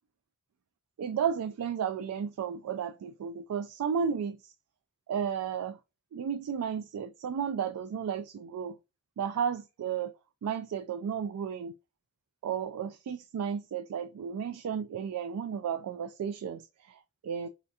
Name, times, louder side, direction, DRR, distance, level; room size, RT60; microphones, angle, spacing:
voice 1, 1.0-4.5 5.1-5.8 6.1-8.8 9.2-10.1 10.4-11.7 12.4-17.5, right 7 dB, 80° right, 0.3 m, -33 dB
4.3 x 2.3 x 2.7 m
head